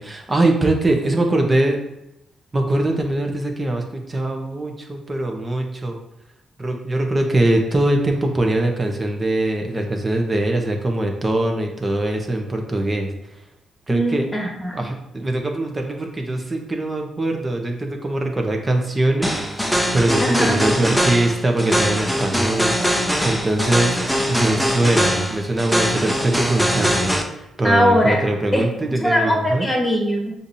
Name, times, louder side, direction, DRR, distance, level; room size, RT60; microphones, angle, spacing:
voice 1, 0.0-1.8 2.5-6.0 6.6-13.1 13.9-14.3 14.7-23.9 24.3-27.2 27.6-29.7, right 1 dB, 25° right, 3 dB, 0.9 m, -22 dB
voice 2, 13.9-14.9 20.2-20.6 27.6-28.2 28.5-30.3, equal, 15° left, 0 dB, 1.4 m, -20 dB
sound 1, 19.2-27.2, equal, ahead, 0.6 m, -22 dB
6.7 x 2.7 x 2.7 m, 0.86 s
cardioid pair, 80°, 0 cm